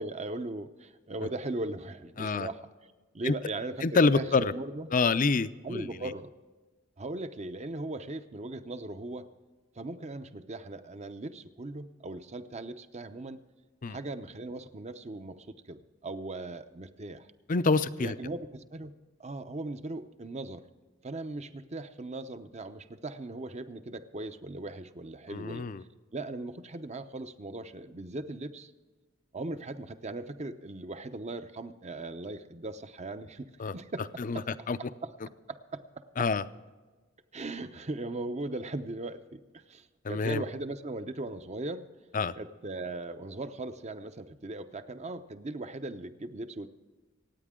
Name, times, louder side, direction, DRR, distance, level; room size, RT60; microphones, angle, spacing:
voice 1, 0.0-4.9 5.6-6.3 7.0-9.3 9.7-13.4 13.9-17.3 18.0-20.6 21.0-25.7 26.1-28.7 29.3-34.7 35.0-35.1 35.5-36.3 37.3-41.9 42.4-46.7, right 2 dB, 35° right, 10 dB, 0.8 m, -39 dB
voice 2, 2.2-2.5 3.2-3.3 3.8-4.5 4.9-6.1 13.8-14.0 17.5-18.2 25.3-25.8 33.6-33.7 34.2-34.4 34.7-34.8 36.2-36.4 40.0-40.4 42.1-42.3, left 4 dB, 45° left, 13 dB, 0.6 m, -27 dB
26.0 x 9.3 x 3.7 m, 1.3 s
head